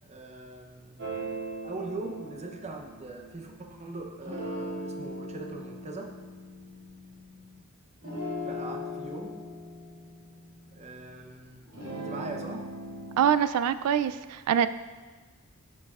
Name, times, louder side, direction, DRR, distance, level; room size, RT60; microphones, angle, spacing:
voice 1, 0.0-1.0 1.6-6.1 8.4-9.4 10.7-11.6 11.9-12.7, right 2 dB, 30° right, 2 dB, 0.7 m, -41 dB
sound 1, 1.0-3.7 4.2-7.6 8.0-11.2 11.6-13.3, equal, 65° right, 2.2 m, -39 dB
voice 2, 13.2-14.7, right 8 dB, 85° right, 15 dB, 0.3 m, -24 dB
10.5 x 5.4 x 2.4 m, 1.4 s
head